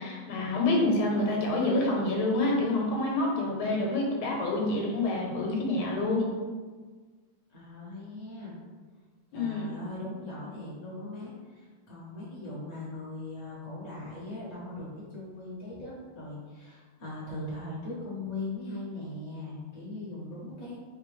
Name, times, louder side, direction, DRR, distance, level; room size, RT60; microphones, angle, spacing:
voice 1, 0.0-6.3 9.3-9.7, left 2 dB, 80° left, -1 dB, 1.7 m, -27 dB
voice 2, 7.5-8.5 9.3-20.8, left 2 dB, 30° left, -7 dB, 0.8 m, -39 dB
4.7 x 2.7 x 3.1 m, 1.4 s
omnidirectional pair, 2.3 m